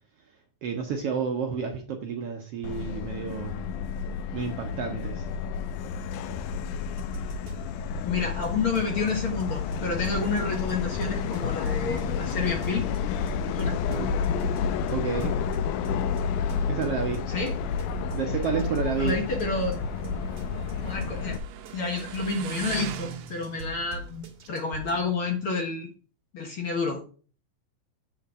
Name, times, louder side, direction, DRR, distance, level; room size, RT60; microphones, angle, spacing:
voice 1, 0.6-3.7 4.3-5.3 13.9-14.1 14.9-15.4 16.7-17.3 18.1-19.2, right 6 dB, 70° right, 3 dB, 1.5 m, -30 dB
Subway metro underground, 2.6-21.4, left 6 dB, 85° left, 2.2 m, -30 dB
sound 1, 7.0-25.0, right 1 dB, 50° right, 1.9 m, -42 dB
voice 2, 8.0-12.9 13.5-13.8 17.3-17.6 19.0-19.7 20.9-21.4 21.7-25.9 26.3-27.0, left 4 dB, 55° left, 2 dB, 1.7 m, -29 dB
Motorcycle, 17.2-25.5, right 11 dB, 85° right, 1.4 m, -43 dB
8.2 x 3.8 x 6.1 m, 0.39 s
omnidirectional pair, 3.5 m